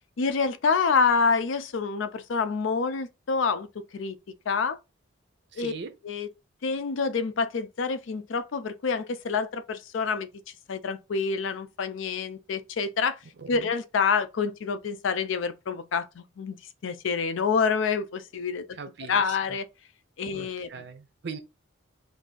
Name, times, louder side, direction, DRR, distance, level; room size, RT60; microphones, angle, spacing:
voice 1, 0.2-3.7 3.9-4.2 4.5-4.8 5.6-5.7 6.0-6.3 6.6-10.3 10.7-13.2 13.5-16.6 16.8-18.6 19.1-19.6 20.2-20.7, left 5 dB, 75° left, 0.4 m, -27 dB
voice 2, 5.5-5.9 13.4-13.7 18.7-19.6 20.3-21.4, right 5 dB, 60° right, 0.6 m, -40 dB
2.6 x 2.5 x 3.8 m
head